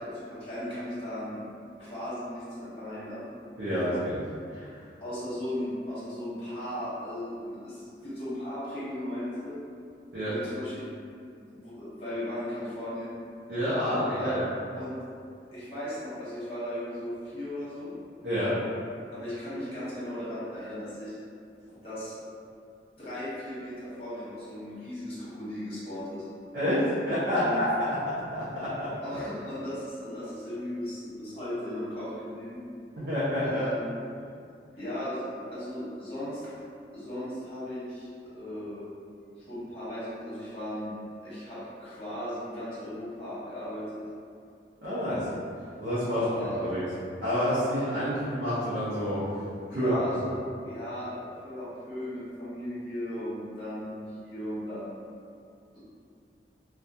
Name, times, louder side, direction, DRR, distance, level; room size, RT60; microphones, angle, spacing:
voice 1, 0.0-1.4 1.8-3.2 5.0-9.6 10.2-10.8 11.4-13.1 13.8-14.3 14.7-14.9 15.5-17.9 19.1-21.2 21.8-22.1 23.0-26.3 27.4-27.6 29.0-32.6 33.4-33.9 34.7-36.5 36.9-38.1 38.3-38.9 39.4-40.9 41.2-44.0 46.1-46.7 49.7-55.0 55.7-55.8, left 1 dB, 35° left, -11 dB, 1.0 m, -36 dB
voice 2, 3.6-4.2 4.5-4.8 10.1-10.3 13.5-14.4 18.2-18.6 26.5-27.7 28.3-28.9 33.0-33.6 44.8-45.3 45.8-46.2 46.6-46.8 47.2-49.2 49.7-50.2, equal, 75° right, -12 dB, 0.6 m, -28 dB
2.3 x 2.3 x 2.7 m, 2.4 s
head